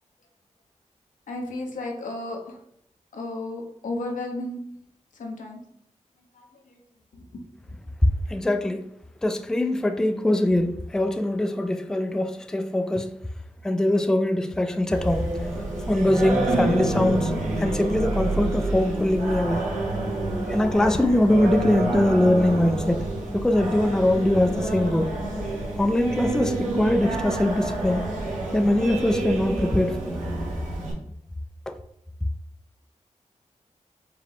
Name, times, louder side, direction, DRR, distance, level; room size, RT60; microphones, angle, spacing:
voice 1, 1.3-2.6 3.1-4.6 5.1-5.6 6.3-6.8 7.1-7.4, left 2 dB, 80° left, 0.8 m, -33 dB
voice 2, 8.0-8.8 9.2-13.1 13.6-15.3 15.9-17.3 17.6-19.7 20.5-23.0 23.3-25.1 25.8-28.0 28.5-30.2 31.7-31.8, left 1 dB, 5° left, 0.3 m, -22 dB
Singing, 14.9-30.9, right 2 dB, 85° right, 1.4 m, -28 dB
4.7 x 2.2 x 3.5 m
cardioid pair, 55°, 13 cm